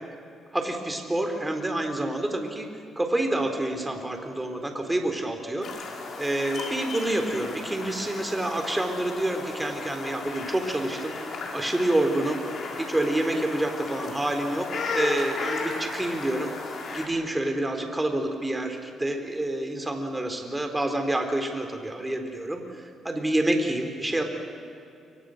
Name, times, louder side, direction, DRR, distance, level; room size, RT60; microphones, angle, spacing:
voice 1, 0.5-2.7 3.0-11.1 11.5-12.4 12.8-16.5 16.9-24.2, right 1 dB, 10° right, 4 dB, 3.8 m, -28 dB
sound 1, 5.6-17.1, left 3 dB, 55° left, 5.3 m, -35 dB
29.0 x 24.5 x 6.6 m, 2.6 s
cardioid pair, 95°, 0 cm